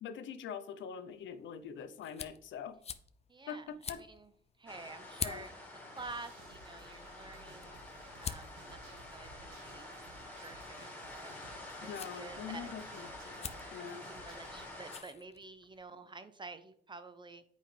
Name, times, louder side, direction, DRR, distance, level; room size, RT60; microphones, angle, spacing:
voice 1, 0.0-2.8 3.5-4.0 5.2-5.5 11.8-14.1, left 7 dB, 70° left, 11 dB, 0.7 m, -44 dB
sound 1, 1.1-15.8, left 6 dB, 30° left, 0.5 m, -48 dB
voice 2, 3.3-4.3 4.6-5.6 5.9-7.7 8.2-9.9 10.4-10.9 11.1-11.3 11.8-11.9 12.1-12.7 14.1-17.4, right 3 dB, 25° right, 10 dB, 0.6 m, -49 dB
sound 2, 4.7-15.0, left 1 dB, 5° left, 2.1 m, -48 dB
sound 3, 6.0-14.7, right 3 dB, 85° right, 1.4 m, -57 dB
7.9 x 5.0 x 3.3 m, 0.62 s
cardioid pair, 90°, 20 cm